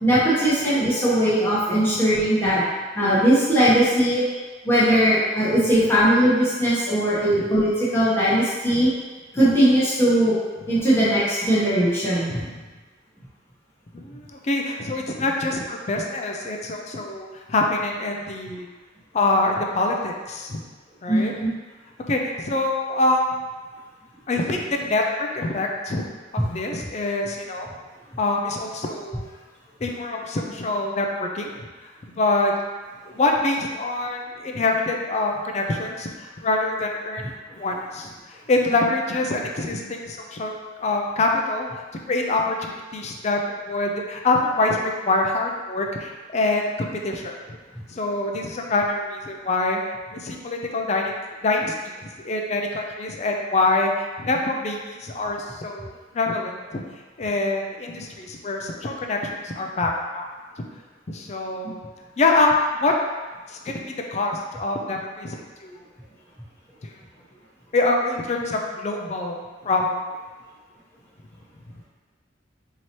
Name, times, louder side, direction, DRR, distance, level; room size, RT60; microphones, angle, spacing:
voice 1, 0.0-2.6 2.9-4.2 4.6-8.9 9.3-10.4 10.7-12.4 21.1-21.5, equal, 15° left, -10 dB, 1.0 m, -19 dB
voice 2, 12.3-12.6 13.9-18.7 19.1-20.6 21.0-21.4 22.1-23.4 24.3-26.1 26.5-27.7 28.2-29.3 29.8-31.5 32.2-32.5 33.1-37.3 37.6-40.5 40.8-41.7 42.1-47.3 47.9-49.8 50.1-51.1 51.4-56.8 57.2-60.3 61.1-61.8 62.2-62.9 63.5-65.4 65.6-65.8 66.8-66.9 67.7-70.0, left 2 dB, 35° left, 1 dB, 0.4 m, -25 dB
4.6 x 2.8 x 3.0 m, 1.3 s
head